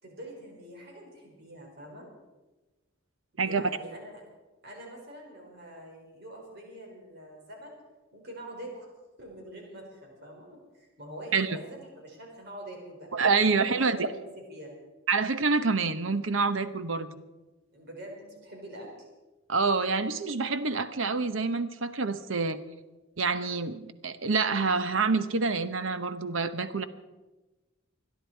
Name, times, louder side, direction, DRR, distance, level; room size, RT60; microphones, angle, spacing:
voice 1, 0.0-2.1 3.3-4.2 4.6-7.8 8.1-8.9 9.2-13.1 13.4-14.7 17.7-18.9, right 1 dB, 55° right, 0 dB, 4.3 m, -45 dB
voice 2, 13.1-14.1 15.1-17.1 19.5-22.6 23.2-26.9, right 4 dB, 75° right, 12 dB, 0.9 m, -27 dB
27.0 x 10.0 x 4.6 m, 1.1 s
head